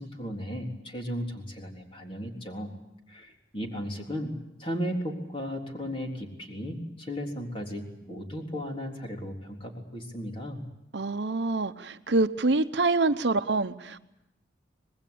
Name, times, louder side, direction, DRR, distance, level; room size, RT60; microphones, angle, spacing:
voice 1, 0.0-2.7 3.1-10.6, equal, 30° left, 1 dB, 3.8 m, -35 dB
voice 2, 10.9-14.0, right 3 dB, 65° right, 10 dB, 0.8 m, -26 dB
25.5 x 20.0 x 8.6 m, 0.85 s
head